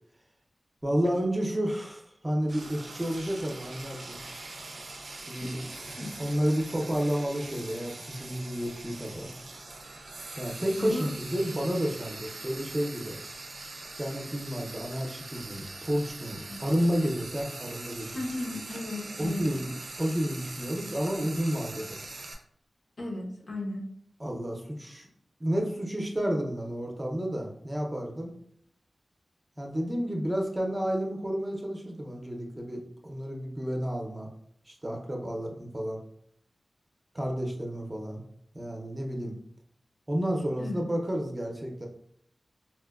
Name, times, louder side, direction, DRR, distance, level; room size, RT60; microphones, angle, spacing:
voice 1, 0.8-4.2 5.3-5.6 6.2-9.3 10.4-13.2 14.0-18.1 19.2-22.0 24.2-25.1 25.4-28.3 29.6-34.3 34.7-36.0 37.1-38.2 38.5-39.4 40.1-41.9, equal, 20° right, 0 dB, 0.6 m, -31 dB
Frying (food), 2.5-22.3, right 2 dB, 80° right, 0.5 m, -42 dB
voice 2, 5.4-6.1 10.8-11.1 16.5-16.6 18.1-19.5 23.0-23.8 40.6-40.9, left 1 dB, 80° left, -1 dB, 0.8 m, -35 dB
4.1 x 2.1 x 2.3 m, 0.68 s
wide cardioid pair, 75°, 0 cm